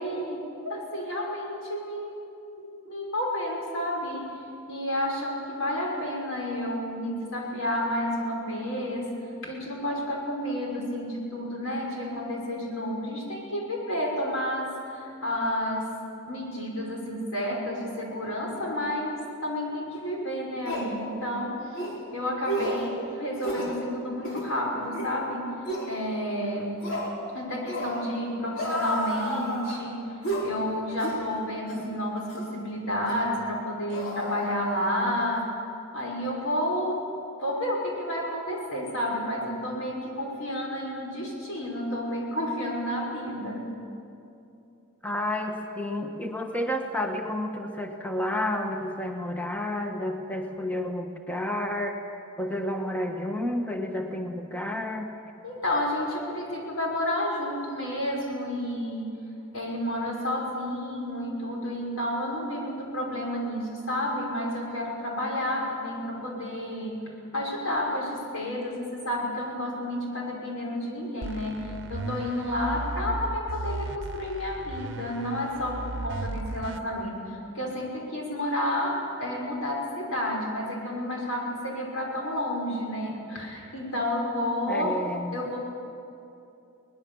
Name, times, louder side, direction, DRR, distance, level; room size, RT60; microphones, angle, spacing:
voice 1, 0.0-2.1 2.5-4.4 4.7-9.1 9.4-16.0 16.3-21.8 22.1-25.5 25.9-26.8 27.3-30.0 30.4-35.5 35.9-37.1 37.4-43.7 55.4-59.1 59.5-67.0 67.3-85.0 85.3-85.6, left 1 dB, 90° left, -1 dB, 5.7 m, -30 dB
sound 1, 19.9-20.0 20.6-20.9 21.7-22.0 22.4-22.9 23.4-23.7 24.2-24.5 24.9-25.1 25.7-25.9 26.8-27.1 27.7-28.0 28.5-29.8 30.2-30.5 31.0-31.2 31.7-31.8 32.3-32.5 33.1-33.2 33.9-35.0 35.2-35.4, right 1 dB, 70° left, 5.1 m, -32 dB
voice 2, 45.0-52.0 52.4-55.1 84.7-85.4, left 1 dB, 5° left, 3 dB, 1.3 m, -30 dB
sound 2, 71.2-76.8, right 2 dB, 55° right, 0.8 m, -36 dB
22.5 x 19.5 x 7.1 m, 2.7 s
head